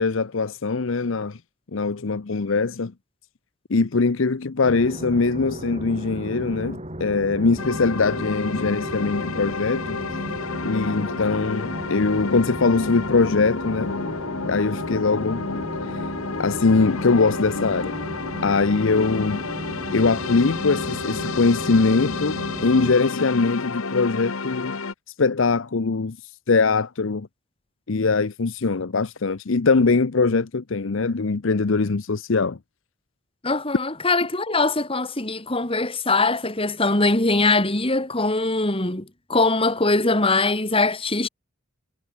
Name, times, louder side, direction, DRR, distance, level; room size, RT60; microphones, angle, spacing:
voice 1, 0.0-1.4 1.7-2.9 3.7-10.0 10.6-13.9 14.5-15.4 15.8-16.0 16.4-17.9 18.4-19.4 19.9-24.8 25.2-26.2 26.5-27.3 27.9-32.6, left 4 dB, 65° left, 0.7 m, -22 dB
sound 1, 4.6-23.0, equal, 30° right, 7.4 m, -35 dB
sound 2, 7.6-24.9, left 4 dB, 80° left, 1.3 m, -31 dB
voice 2, 33.4-41.3, left 2 dB, 25° left, 3.1 m, -22 dB
head